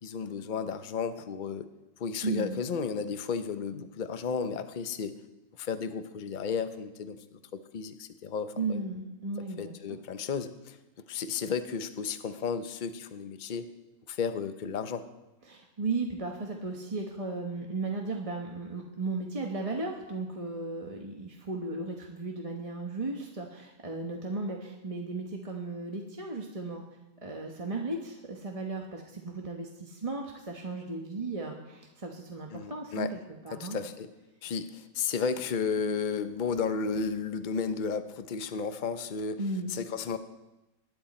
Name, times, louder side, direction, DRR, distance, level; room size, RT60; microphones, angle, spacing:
voice 1, 0.0-1.7 2.0-5.2 5.6-8.8 9.6-10.8 11.1-13.7 14.1-15.0 32.5-33.1 33.5-34.1 34.4-39.4 39.7-40.2, left 5 dB, 45° left, 9 dB, 0.6 m, -33 dB
voice 2, 2.2-2.6 8.6-10.0 15.5-26.8 27.2-33.8 39.4-39.7, right 3 dB, 25° right, 0 dB, 1.1 m, -35 dB
21.0 x 10.0 x 4.3 m, 1.0 s
omnidirectional pair, 1.9 m